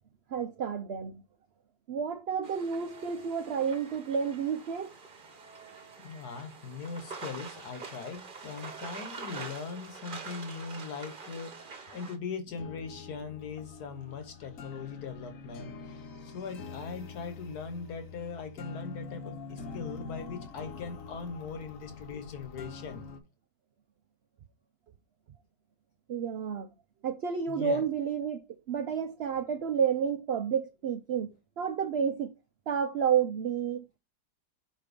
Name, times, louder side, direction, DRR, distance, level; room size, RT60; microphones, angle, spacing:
voice 1, 0.3-1.2 1.9-4.9 26.1-26.7 27.0-31.3 31.6-32.3 32.7-33.8, right 7 dB, 75° right, 0.5 m, -30 dB
sound 1, 2.4-12.2, right 4 dB, 40° right, 0.9 m, -45 dB
voice 2, 6.0-11.5 11.9-16.0 16.3-23.1 27.5-27.8, left 5 dB, 75° left, 1.6 m, -40 dB
sound 2, 12.5-23.2, left 4 dB, 55° left, 1.3 m, -45 dB
5.1 x 4.2 x 5.2 m
omnidirectional pair, 1.7 m